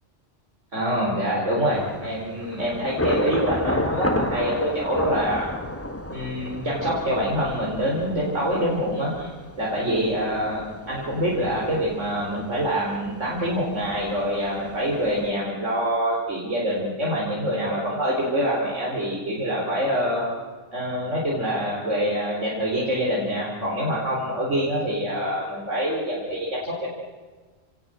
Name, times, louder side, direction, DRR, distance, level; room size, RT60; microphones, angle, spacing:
voice 1, 0.7-5.5 6.1-9.3 9.6-20.3 20.7-26.9, equal, 80° right, -4 dB, 4.9 m, -25 dB
Thunder / Rain, 1.7-15.3, left 1 dB, 10° left, 1.5 m, -32 dB
29.0 x 18.5 x 7.9 m, 1.4 s
omnidirectional pair, 1.2 m